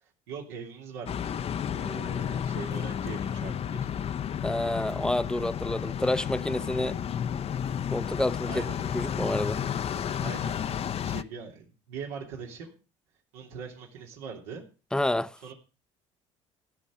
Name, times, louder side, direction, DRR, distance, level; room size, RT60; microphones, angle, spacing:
voice 1, 0.0-3.9 8.5-8.9 9.9-12.8 13.3-14.6 15.4-15.5, right 6 dB, 85° right, 3.0 m, -42 dB
sound 1, 1.1-11.2, left 8 dB, 45° left, 0.7 m, -32 dB
voice 2, 4.4-7.0 7.9-8.6 8.9-9.6 14.9-15.4, left 1 dB, 5° left, 0.7 m, -28 dB
15.5 x 5.4 x 7.4 m
supercardioid pair, 75°, 15 cm